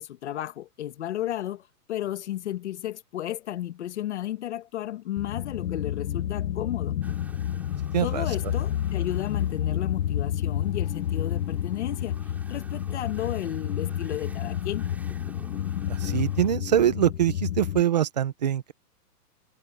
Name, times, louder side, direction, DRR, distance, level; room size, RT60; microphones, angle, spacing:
voice 1, 0.0-7.0 8.0-12.2 12.5-14.9, left 12 dB, 45° left, 1.6 m, -33 dB
sound 1, 5.2-17.8, left 10 dB, 85° left, 1.1 m, -30 dB
sound 2, 7.0-16.6, right 2 dB, 5° right, 6.4 m, -51 dB
voice 2, 7.9-8.3 15.9-18.7, right 10 dB, 30° right, 0.6 m, -24 dB
hypercardioid pair, 175°, 48 cm